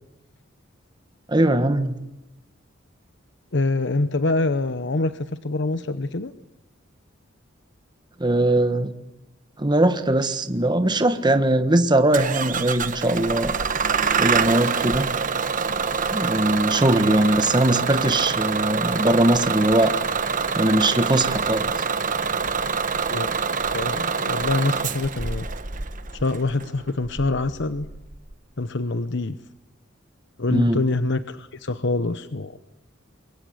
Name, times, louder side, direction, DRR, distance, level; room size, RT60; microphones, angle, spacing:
voice 1, 1.3-2.0 8.2-8.9 9.6-13.6 14.2-15.1 16.1-19.9 20.6-21.8 30.5-30.8, right 1 dB, 25° right, 9 dB, 1.4 m, -20 dB
voice 2, 3.5-6.3 23.1-23.3 23.7-25.5 26.1-27.9 28.6-29.4 30.4-32.6, left 2 dB, 65° left, 11 dB, 0.9 m, -25 dB
Bus / Engine starting, 12.1-28.3, right 5 dB, 45° right, 1.4 m, -26 dB
28.0 x 23.0 x 8.0 m, 0.89 s
head